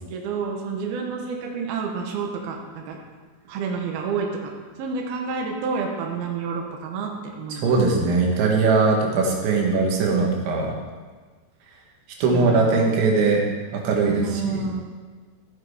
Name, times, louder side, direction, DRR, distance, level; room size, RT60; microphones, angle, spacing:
voice 1, 0.1-3.0 3.5-4.5 4.8-7.7 12.3-13.0 14.0-14.8, right 5 dB, 70° right, 1 dB, 2.9 m, -29 dB
voice 2, 7.5-10.7 12.2-13.4 13.8-14.6, right 4 dB, 90° right, 0 dB, 4.0 m, -20 dB
15.0 x 7.5 x 4.9 m, 1.4 s
omnidirectional pair, 5.1 m